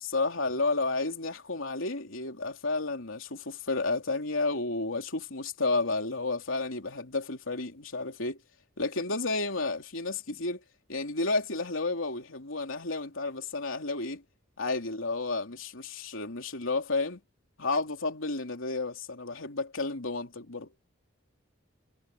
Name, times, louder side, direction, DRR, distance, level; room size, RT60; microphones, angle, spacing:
voice 1, 0.0-8.4 8.8-10.6 10.9-14.2 14.6-17.2 17.6-20.7, left 3 dB, 90° left, 3.3 m, -31 dB
head